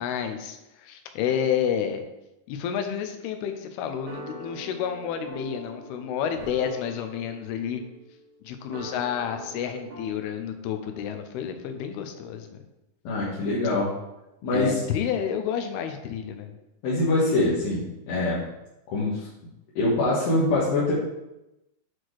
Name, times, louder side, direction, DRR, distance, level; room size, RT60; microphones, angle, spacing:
voice 1, 0.0-2.0 2.5-7.8 8.4-12.5 14.5-16.5, left 8 dB, 90° left, 7 dB, 2.7 m, -30 dB
sound 1, 3.2-10.1, equal, 65° right, 1.3 m, -44 dB
voice 2, 13.0-13.9 14.4-14.8 16.8-18.4 18.9-19.3 19.8-20.9, left 2 dB, 70° left, -8 dB, 3.0 m, -24 dB
8.2 x 4.4 x 4.7 m, 0.94 s
omnidirectional pair, 4.4 m